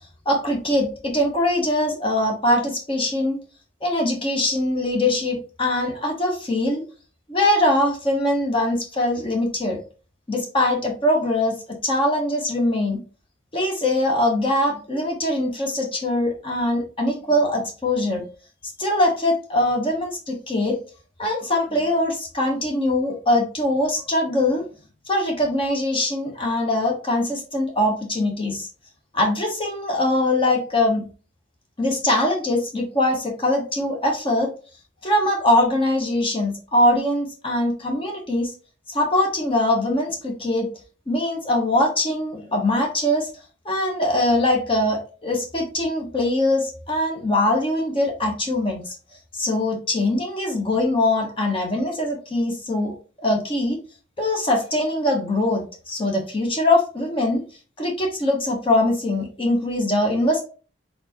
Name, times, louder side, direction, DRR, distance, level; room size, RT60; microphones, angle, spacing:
voice 1, 0.3-3.4 3.8-6.8 7.3-9.8 10.3-13.0 13.5-18.2 18.8-20.8 21.2-24.6 25.1-28.7 29.1-31.1 31.8-34.5 35.0-38.5 38.9-40.7 41.1-43.3 43.6-49.0 49.3-52.9 53.2-53.8 54.2-57.4 57.8-60.4, left 1 dB, 30° left, 0 dB, 0.9 m, -22 dB
4.2 x 3.9 x 2.9 m, 0.36 s
head